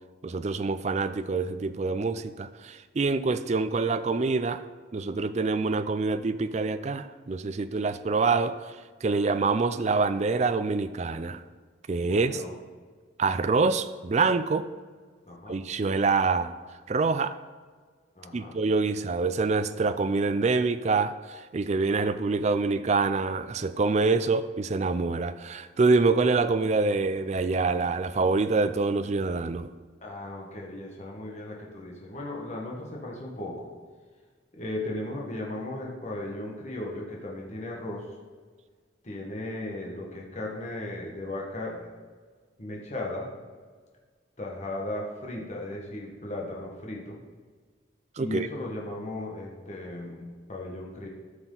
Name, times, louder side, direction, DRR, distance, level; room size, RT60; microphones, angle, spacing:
voice 1, 0.2-4.6 4.9-11.4 11.9-12.4 13.2-14.7 15.5-16.5 16.9-17.3 18.3-29.7 48.2-48.5, right 4 dB, 35° right, 12 dB, 0.4 m, -26 dB
voice 2, 12.1-12.5 15.3-15.6 18.2-18.6 30.0-33.7 34.5-38.1 39.0-41.9 42.6-43.3 44.4-47.2 48.2-51.1, left 1 dB, 35° left, -2 dB, 1.4 m, -36 dB
13.0 x 6.0 x 3.9 m, 1.5 s
head